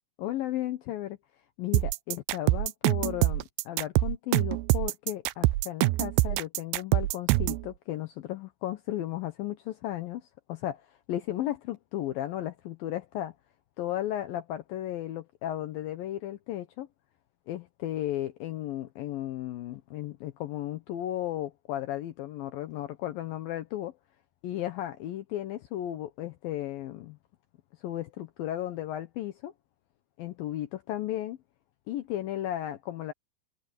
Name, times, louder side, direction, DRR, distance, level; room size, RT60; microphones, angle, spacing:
voice 1, 0.2-1.2 1.6-13.3 13.8-16.9 17.5-24.0 24.4-27.2 27.8-29.5 30.2-31.4 31.9-33.1, left 13 dB, 75° left, 2.6 m, -35 dB
sound 1, 1.7-7.6, right 19 dB, 80° right, 2.4 m, -25 dB
omnidirectional pair, 4.6 m